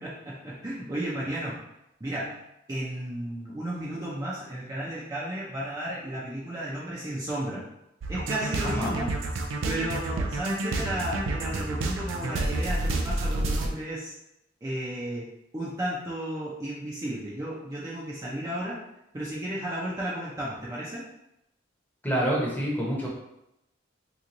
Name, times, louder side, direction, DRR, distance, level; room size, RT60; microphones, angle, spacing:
voice 1, 0.0-1.6 2.0-2.4 2.7-7.6 8.1-9.1 9.6-14.1 14.6-15.3 15.5-18.8 19.1-21.0, right 1 dB, 20° right, -7 dB, 0.6 m, -33 dB
sound 1, 8.0-13.7, right 2 dB, 85° right, 0.4 m, -29 dB
voice 2, 8.6-8.9 22.0-23.1, equal, 10° left, -5 dB, 0.9 m, -27 dB
2.9 x 2.4 x 3.8 m, 0.84 s
head